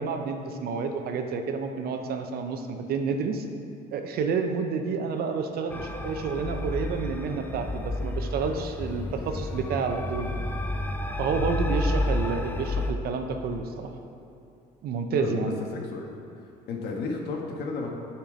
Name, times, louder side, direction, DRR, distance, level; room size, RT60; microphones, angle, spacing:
voice 1, 0.0-3.5 3.9-10.3 11.2-13.9 14.8-15.6, right 5 dB, 65° right, 5 dB, 0.7 m, -29 dB
sound 1, 5.7-12.9, left 1 dB, 10° left, 0.5 m, -30 dB
voice 2, 15.1-16.2 16.7-17.9, left 3 dB, 75° left, 0 dB, 1.3 m, -33 dB
8.8 x 4.5 x 5.1 m, 2.8 s
cardioid pair, 110°, 17 cm